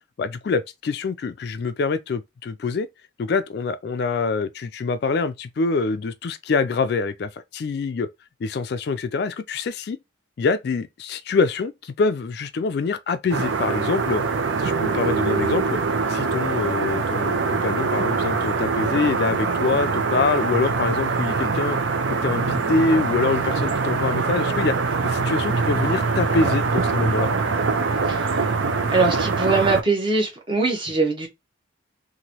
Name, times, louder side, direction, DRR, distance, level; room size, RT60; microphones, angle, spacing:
voice 1, 0.2-2.9 3.2-8.1 8.4-10.0 10.4-14.2 14.6-15.8 16.1-21.8 22.2-24.7 25.0-27.3, left 4 dB, 55° left, 0.3 m, -25 dB
sound 1, 13.3-29.8, right 4 dB, 75° right, 0.5 m, -23 dB
voice 2, 28.0-28.5 28.9-31.3, right 3 dB, 25° right, 0.8 m, -22 dB
3.0 x 2.5 x 2.8 m
head